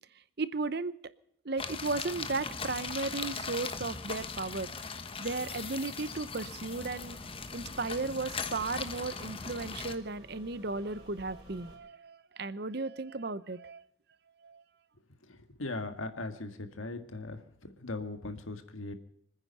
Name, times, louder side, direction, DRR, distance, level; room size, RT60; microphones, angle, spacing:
voice 1, 0.4-1.1 1.4-4.7 5.2-7.2 7.5-13.8 14.4-14.6, right 3 dB, 50° right, 16 dB, 0.8 m, -35 dB
sound 1, 1.6-10.0, left 5 dB, 25° left, 1.1 m, -39 dB
sound 2, 6.6-11.8, equal, 25° right, 5.4 m, -53 dB
voice 2, 15.6-17.4 17.8-18.9, left 2 dB, 90° left, 7 dB, 1.8 m, -38 dB
26.0 x 9.8 x 5.5 m, 0.71 s
head